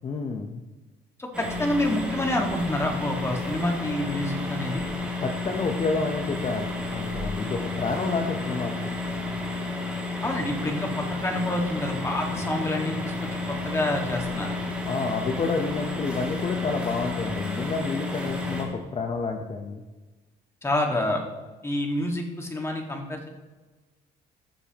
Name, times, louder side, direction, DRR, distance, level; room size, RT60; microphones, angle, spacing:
voice 1, 0.0-0.6 5.2-6.7 6.9-8.7 14.9-19.8, left 4 dB, 35° left, 4 dB, 0.8 m, -29 dB
voice 2, 1.2-4.8 10.2-14.6 20.6-21.2 21.6-23.3, left 1 dB, 15° left, 1 dB, 1.8 m, -28 dB
sound 1, 1.3-18.6, left 3 dB, 5° right, 2.4 m, -31 dB
15.5 x 7.0 x 3.0 m, 1.2 s
cardioid pair, 110°, 17 cm